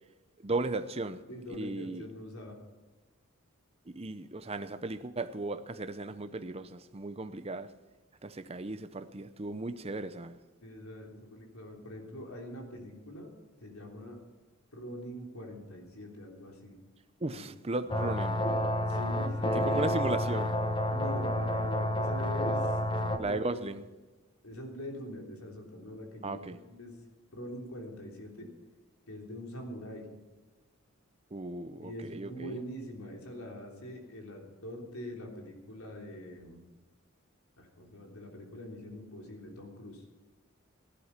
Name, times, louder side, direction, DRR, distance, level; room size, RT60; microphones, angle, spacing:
voice 1, 0.4-1.2 1.5-2.1 3.9-7.7 8.2-10.4 17.2-18.5 19.5-20.5 23.2-23.8 26.2-26.6 31.3-32.6, right 2 dB, 30° right, 0.7 m, -36 dB
voice 2, 1.3-2.6 10.6-13.3 13.6-14.2 14.7-16.8 17.3-17.5 18.9-19.7 20.9-23.8 24.4-26.9 27.3-28.5 29.1-30.1 31.8-36.7 37.6-40.0, equal, 90° left, 3.4 m, -43 dB
sound 1, 17.9-23.2, left 1 dB, 25° left, 1.1 m, -29 dB
15.5 x 11.5 x 5.9 m
head